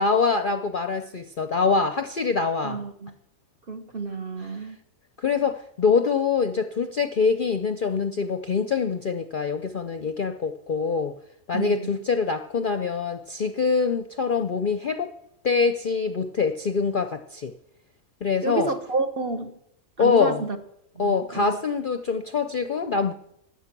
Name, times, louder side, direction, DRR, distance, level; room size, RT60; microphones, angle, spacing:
voice 1, 0.0-2.8 4.4-4.6 5.2-11.1 11.5-15.1 15.4-17.5 18.2-18.7 20.0-20.4 21.0-23.1, left 5 dB, 50° left, 9 dB, 0.6 m, -24 dB
voice 2, 2.6-3.1 3.7-4.8 11.5-11.9 18.4-19.5 20.0-20.6 20.9-21.6, right 4 dB, 40° right, 7 dB, 1.2 m, -30 dB
16.0 x 10.0 x 6.0 m, 0.77 s
omnidirectional pair, 1.5 m